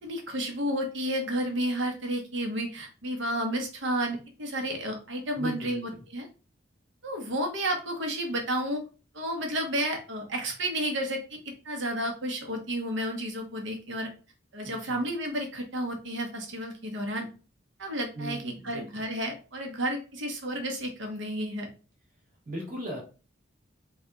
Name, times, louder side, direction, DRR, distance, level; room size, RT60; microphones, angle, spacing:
voice 1, 0.0-6.2 7.0-8.8 9.1-11.4 11.6-14.1 14.5-17.3 17.8-21.7, right 1 dB, 70° right, 3 dB, 1.0 m, -31 dB
voice 2, 5.3-5.8 14.6-15.0 18.1-18.8 22.4-23.0, equal, 40° right, -2 dB, 1.3 m, -38 dB
3.3 x 2.4 x 3.9 m, 0.34 s
head